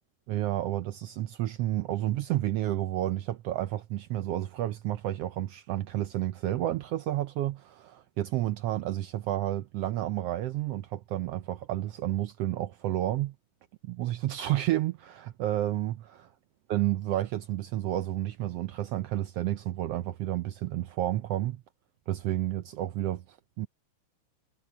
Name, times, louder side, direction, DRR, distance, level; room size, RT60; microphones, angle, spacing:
voice 1, 0.3-13.3 13.8-16.3 16.7-21.6 22.1-23.7, right 14 dB, 80° right, 1.4 m, -31 dB
omnidirectional pair, 3.4 m